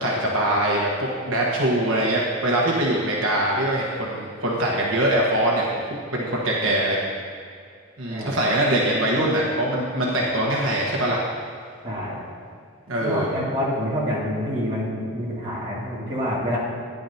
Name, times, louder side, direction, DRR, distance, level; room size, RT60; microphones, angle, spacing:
voice 1, 0.0-7.0 8.0-11.2 12.9-13.3, right 1 dB, 65° right, -3 dB, 1.3 m, -23 dB
voice 2, 8.1-8.4 11.8-12.2 13.0-16.6, equal, 25° right, -8 dB, 2.4 m, -27 dB
12.5 x 10.5 x 2.8 m, 2.2 s
head